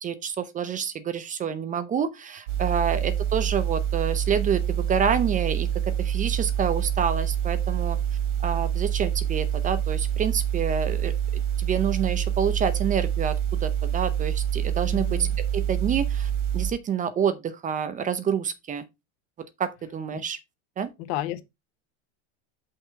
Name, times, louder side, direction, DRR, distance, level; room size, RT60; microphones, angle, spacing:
voice 1, 0.0-5.7 6.0-8.0 8.4-15.3 15.5-18.8 19.6-20.4 20.8-20.9, right 7 dB, 20° right, 0.6 m, -28 dB
sound 1, 2.5-16.7, right 9 dB, 80° right, 1.9 m, -26 dB
voice 2, 14.9-15.4 20.1-20.2 21.0-21.4, left 14 dB, 60° left, 0.9 m, -32 dB
5.8 x 3.4 x 5.7 m
supercardioid pair, 130°, 36 cm